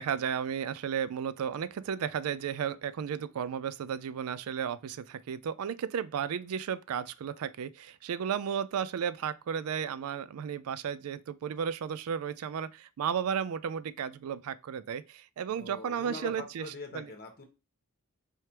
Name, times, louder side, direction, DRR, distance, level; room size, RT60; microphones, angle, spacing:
voice 1, 0.0-16.6 16.9-17.1, right 7 dB, 70° right, 0.3 m, -34 dB
voice 2, 15.6-17.4, left 2 dB, 45° left, 1.0 m, -43 dB
4.7 x 3.2 x 2.9 m
head